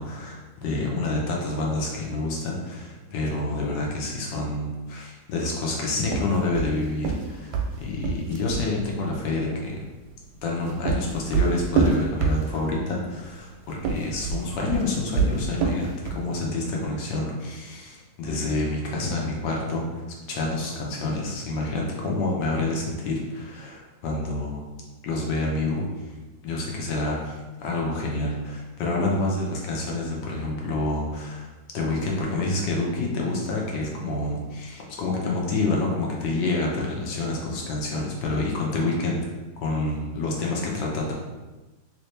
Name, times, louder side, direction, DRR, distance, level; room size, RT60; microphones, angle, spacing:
voice 1, 0.0-9.7 10.4-19.9 20.3-24.7 25.0-25.9 26.4-31.5 31.7-39.2 39.6-41.1, left 2 dB, 70° left, -2 dB, 1.3 m, -28 dB
sound 1, 6.0-8.7 10.4-12.8 13.7-16.3, right 5 dB, 90° right, 1.3 m, -26 dB
3.2 x 3.1 x 3.2 m, 1.2 s
omnidirectional pair, 2.1 m